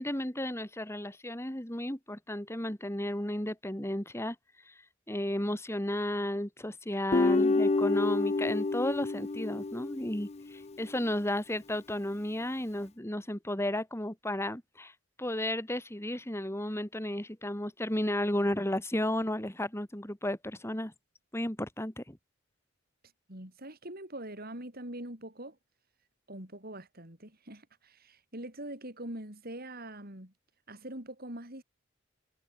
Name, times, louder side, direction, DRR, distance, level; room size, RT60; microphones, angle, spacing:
voice 1, 0.0-4.4 4.7-4.8 5.1-14.9 15.2-20.9 21.3-22.2, left 1 dB, 15° left, 2.4 m, -33 dB
Guitar, 7.1-10.4, left 3 dB, 30° left, 0.5 m, -28 dB
voice 2, 23.3-25.6 26.3-30.3 30.7-31.6, right 1 dB, 50° right, 7.6 m, -43 dB
head